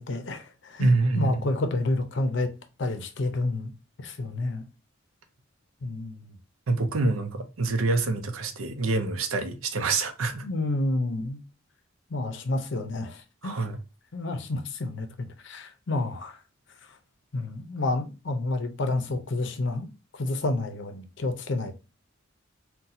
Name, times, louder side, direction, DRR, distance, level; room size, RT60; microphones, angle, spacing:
voice 1, 0.0-2.5 2.8-3.7 4.0-4.6 5.8-6.4 10.4-11.4 12.1-13.6 14.1-16.4 17.3-19.9 20.1-21.7, left 2 dB, 60° left, 0.6 m, -29 dB
voice 2, 0.8-1.5 6.7-10.5 13.4-13.8, right 3 dB, 85° right, 0.6 m, -26 dB
4.0 x 2.3 x 2.6 m
head